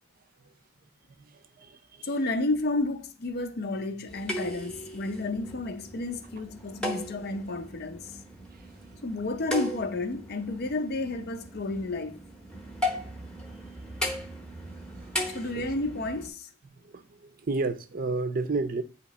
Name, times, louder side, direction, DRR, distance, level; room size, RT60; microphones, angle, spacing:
voice 1, 1.3-2.1 14.7-15.1 15.5-15.7 16.8-18.8, right 3 dB, 45° right, 0.5 m, -32 dB
voice 2, 2.0-8.1 9.0-12.2 15.3-16.5, left 2 dB, 55° left, 0.6 m, -31 dB
sound 1, 4.1-16.3, left 1 dB, 5° left, 0.8 m, -37 dB
8.1 x 2.9 x 4.1 m
head